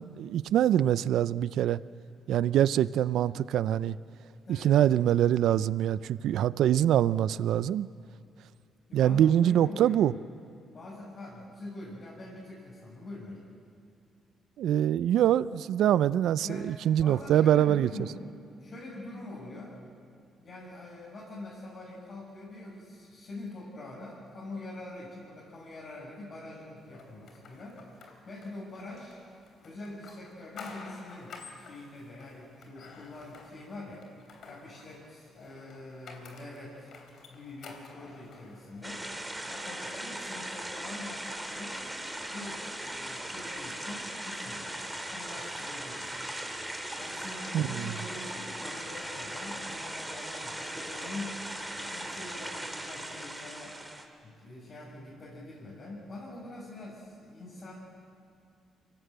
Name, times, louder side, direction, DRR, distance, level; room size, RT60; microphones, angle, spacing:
voice 1, 0.0-1.8 2.3-4.0 4.6-7.9 8.9-10.1 14.6-17.9 47.5-47.9, right 11 dB, 80° right, 17 dB, 0.5 m, -24 dB
voice 2, 4.4-4.7 8.9-10.0 10.7-13.4 16.4-18.2 18.6-19.8 20.4-29.2 29.6-34.0 34.4-36.9 37.3-39.0 39.4-41.8 42.2-46.2 47.0-51.4 51.7-53.8 54.2-57.7, left 2 dB, 50° left, -6 dB, 6.8 m, -44 dB
sound 1, 26.9-39.2, left 4 dB, 65° left, 3.3 m, -51 dB
sound 2, 38.8-54.1, right 1 dB, 5° right, 2.5 m, -38 dB
25.0 x 17.5 x 7.8 m, 2.4 s
cardioid pair, 90°, 0 cm